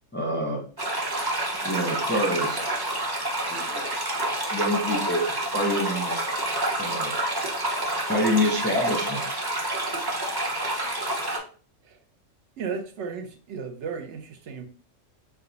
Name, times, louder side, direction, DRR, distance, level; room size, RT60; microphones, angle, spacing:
voice 1, 0.1-0.6 1.6-2.7 3.5-3.8 4.5-6.4 6.8-7.2 8.1-9.2, equal, 10° left, 0.5 m, -27 dB
sound 1, 0.8-11.4, right 1 dB, 20° right, 0.9 m, -28 dB
voice 2, 12.6-14.6, right 5 dB, 65° right, 1.0 m, -34 dB
4.7 x 2.3 x 3.9 m
omnidirectional pair, 1.4 m